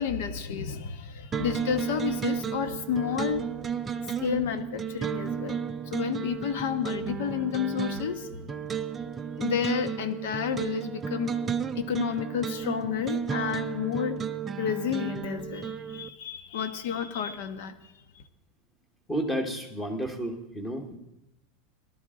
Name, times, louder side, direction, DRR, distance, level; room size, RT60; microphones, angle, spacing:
voice 1, 0.0-3.5 4.2-8.5 9.4-11.3 11.8-14.2 14.6-17.7, left 8 dB, 70° left, 11 dB, 1.1 m, -31 dB
sound 1, 1.3-16.1, right 7 dB, 15° right, 0.4 m, -33 dB
voice 2, 19.1-21.0, right 1 dB, 10° left, 6 dB, 1.2 m, -31 dB
18.0 x 12.0 x 3.8 m, 0.88 s
supercardioid pair, 170°, 0 cm